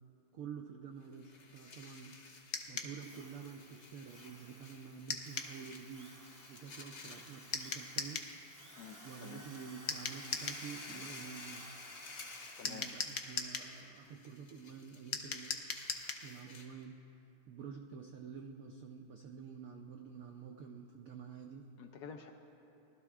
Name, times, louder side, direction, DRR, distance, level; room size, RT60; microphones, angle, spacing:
voice 1, 0.3-2.2 2.7-6.1 6.5-8.3 9.0-11.7 12.6-15.7 16.2-17.0 17.5-21.7, right 6 dB, 90° right, 3 dB, 0.7 m, -49 dB
sound 1, 1.0-16.8, left 3 dB, 45° left, 1.2 m, -54 dB
sound 2, 2.5-2.9 5.1-5.5 7.5-8.3 9.9-10.6 12.6-13.7 15.1-16.3, left 5 dB, 90° left, 0.5 m, -39 dB
Drill, 3.0-13.4, right 1 dB, 20° right, 0.5 m, -57 dB
voice 2, 8.8-9.4 10.9-11.0 12.6-12.9 21.8-22.3, left 7 dB, 75° left, 4 dB, 0.9 m, -50 dB
19.5 x 12.5 x 2.4 m, 2.9 s
omnidirectional pair, 2.1 m